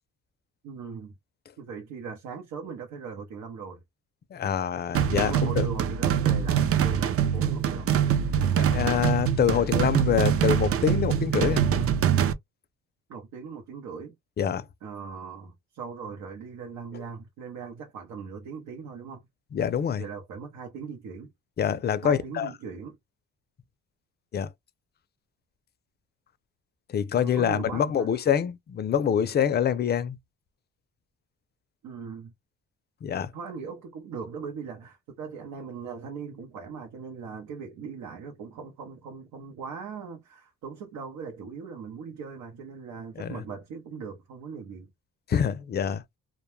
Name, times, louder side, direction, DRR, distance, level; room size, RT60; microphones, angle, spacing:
voice 1, 0.6-1.1 1.6-3.8 5.1-7.9 13.1-14.1 14.8-19.2 20.0-21.3 22.0-23.0 27.2-28.1 31.8-32.3 33.3-44.9, right 5 dB, 85° right, 0.8 m, -39 dB
voice 2, 4.3-5.7 8.5-11.7 14.4-14.7 19.5-20.0 21.6-22.5 24.3-24.5 26.9-30.2 33.0-33.3 43.2-43.4 45.3-46.0, left 8 dB, 35° left, 0.4 m, -25 dB
sound 1, 4.9-12.3, right 9 dB, 50° right, 0.5 m, -24 dB
2.2 x 2.1 x 3.1 m
cardioid pair, 90°, 30 cm